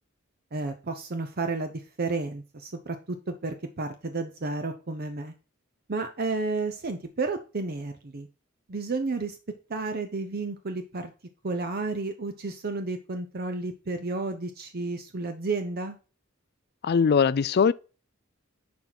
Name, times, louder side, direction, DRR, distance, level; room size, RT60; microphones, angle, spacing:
voice 1, 0.5-5.3 5.9-8.3 8.7-9.4 9.7-11.1 11.4-16.0, right 3 dB, 50° right, 0.7 m, -32 dB
voice 2, 16.8-17.7, left 6 dB, 50° left, 0.4 m, -21 dB
10.5 x 4.5 x 4.0 m
head